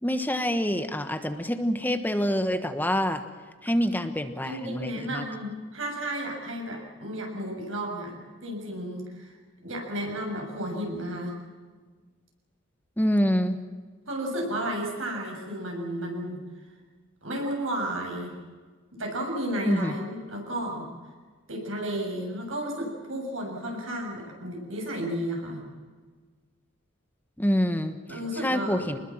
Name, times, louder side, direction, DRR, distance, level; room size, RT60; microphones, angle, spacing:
voice 1, 0.0-3.2 3.6-5.2 13.0-13.6 19.7-19.9 27.4-29.0, equal, 10° left, 8 dB, 1.2 m, -26 dB
voice 2, 4.4-9.3 9.6-11.4 14.1-16.4 17.2-18.3 18.9-20.9 21.5-25.6 28.1-29.0, right 1 dB, 85° right, 1 dB, 7.4 m, -33 dB
26.0 x 20.5 x 7.4 m, 1.4 s
head